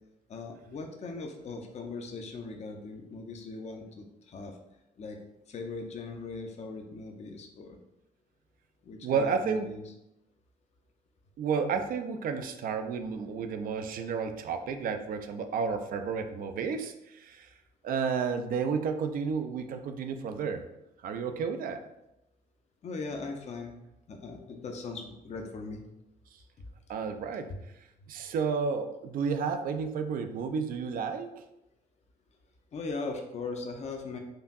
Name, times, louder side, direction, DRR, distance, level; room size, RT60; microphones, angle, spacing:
voice 1, 0.3-4.5 5.0-5.2 5.5-7.8 8.8-9.8 22.8-23.8 24.1-25.8 32.7-34.2, left 3 dB, 35° left, 4 dB, 0.5 m, -39 dB
voice 2, 9.0-9.7 11.4-17.5 17.8-20.7 21.0-21.8 26.9-27.5 28.1-31.4, right 5 dB, 45° right, 7 dB, 0.4 m, -31 dB
4.6 x 2.5 x 2.4 m, 0.88 s
figure-of-eight pair, 45°, 21 cm